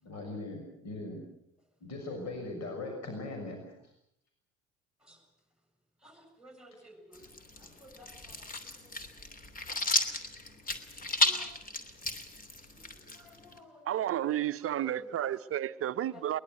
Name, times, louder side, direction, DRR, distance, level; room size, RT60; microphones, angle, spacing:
voice 1, 0.0-1.2 1.8-3.8, left 2 dB, 45° left, 6.4 m, -39 dB
voice 2, 6.0-9.3 9.7-9.8 11.2-11.5 13.1-14.1 14.6-15.1 16.1-16.2, equal, ahead, 7.6 m, -55 dB
sound 1, 7.1-13.6, left 2 dB, 20° left, 3.0 m, -33 dB
voice 3, 13.8-16.4, right 11 dB, 35° right, 1.0 m, -31 dB
23.0 x 20.5 x 8.0 m
figure-of-eight pair, 60°, 38 cm